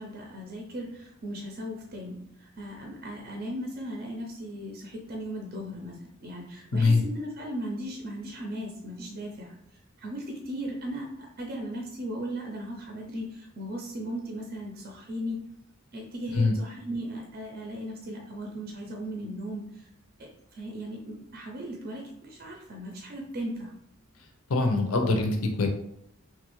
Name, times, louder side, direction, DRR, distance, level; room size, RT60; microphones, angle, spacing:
voice 1, 0.0-9.6 10.0-15.4 15.9-19.9 20.2-23.7, equal, 45° right, 0 dB, 0.5 m, -37 dB
voice 2, 24.5-25.7, left 3 dB, 70° left, 3 dB, 0.6 m, -23 dB
3.0 x 2.3 x 3.1 m, 0.75 s
head